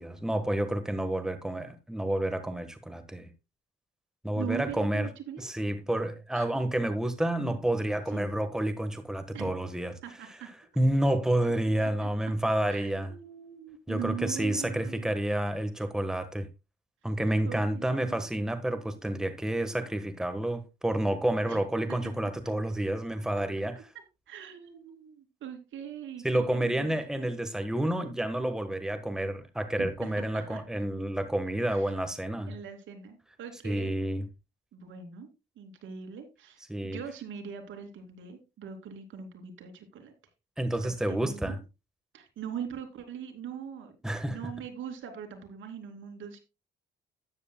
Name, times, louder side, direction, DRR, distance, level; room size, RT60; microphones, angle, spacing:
voice 1, 0.0-3.3 4.2-5.1 5.4-9.9 10.8-13.1 13.9-16.5 17.0-23.8 26.2-32.5 33.6-34.2 36.7-37.0 40.6-41.6 44.0-44.4, right 1 dB, 5° right, 1.3 m, -29 dB
voice 2, 4.4-5.5 6.3-6.5 8.1-8.3 9.3-9.5 10.0-10.5 11.4-11.5 11.8-12.1 12.7-15.1 17.4-18.2 21.5-21.6 21.9-22.0 24.3-26.9 29.8-30.6 31.7-31.9 32.5-34.0 34.7-35.3 35.6-40.1 40.8-41.6 42.1-43.9 44.2-46.4, right 8 dB, 75° right, 2.7 m, -41 dB
12.5 x 9.7 x 2.2 m
cardioid pair, 90°, 20 cm